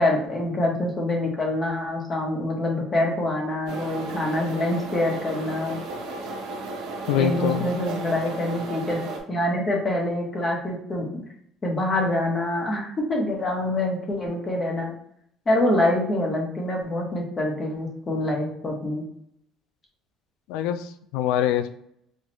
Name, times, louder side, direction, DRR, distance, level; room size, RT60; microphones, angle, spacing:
voice 1, 0.0-5.8 7.1-11.2 11.6-14.9 15.5-19.0, left 1 dB, 25° left, 0 dB, 1.0 m, -25 dB
sound 1, 3.7-9.2, right 3 dB, 70° right, 0.8 m, -34 dB
voice 2, 7.1-7.7 20.5-21.7, left 10 dB, 85° left, 11 dB, 0.3 m, -24 dB
4.3 x 2.4 x 3.0 m, 0.71 s
cardioid pair, 140°, 0 cm